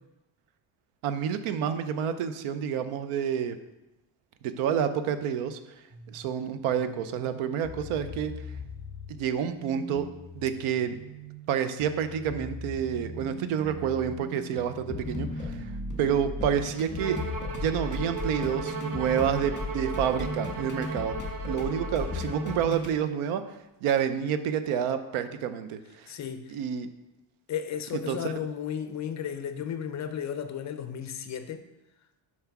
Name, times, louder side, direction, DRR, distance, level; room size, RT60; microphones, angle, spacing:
voice 1, 1.0-3.6 4.4-5.6 6.1-8.3 9.1-10.1 10.3-11.0 11.5-15.6 16.0-17.2 17.5-21.2 21.4-23.4 23.8-26.1 26.5-26.9 27.9-28.3, right 8 dB, 80° right, 0.8 m, -29 dB
sound 1, 5.9-17.7, left 1 dB, 5° right, 0.8 m, -43 dB
sound 2, 14.9-23.0, left 2 dB, 20° left, 1.3 m, -35 dB
Bowed string instrument, 17.0-22.7, right 4 dB, 40° right, 0.8 m, -37 dB
voice 2, 26.1-26.5 27.5-31.7, left 8 dB, 35° left, 0.5 m, -34 dB
5.8 x 4.6 x 5.9 m
cardioid pair, 135°, 49 cm